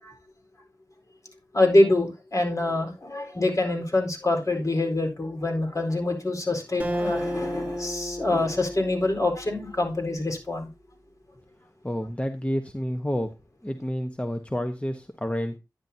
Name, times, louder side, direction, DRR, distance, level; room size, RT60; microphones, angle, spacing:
voice 1, 1.5-10.7, left 2 dB, 45° left, 3 dB, 4.2 m, -25 dB
Acoustic guitar, 6.8-10.3, equal, 20° right, 1.8 m, -33 dB
voice 2, 11.8-13.3 13.6-15.5, equal, 15° left, 6 dB, 1.1 m, -29 dB
10.5 x 10.0 x 2.8 m, 0.26 s
cardioid pair, 45°, 8 cm